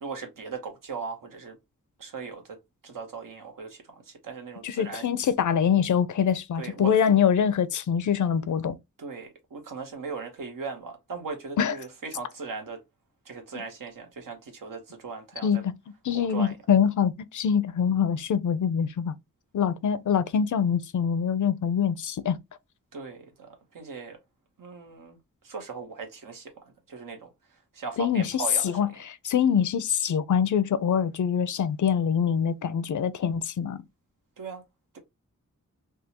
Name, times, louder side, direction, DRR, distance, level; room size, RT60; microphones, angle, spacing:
voice 1, 0.0-1.6 2.0-2.6 2.8-5.1 6.6-6.9 9.0-12.8 13.2-15.6 16.1-16.5 22.9-24.2 24.6-28.9 34.4-34.6, right 5 dB, 85° right, 1.2 m, -38 dB
voice 2, 4.6-8.8 11.6-11.7 15.4-15.7 16.1-19.2 19.5-22.4 28.0-28.3 28.6-28.9 29.2-33.8, left 7 dB, 70° left, 0.5 m, -24 dB
3.5 x 2.3 x 2.9 m
wide cardioid pair, 105°, 32 cm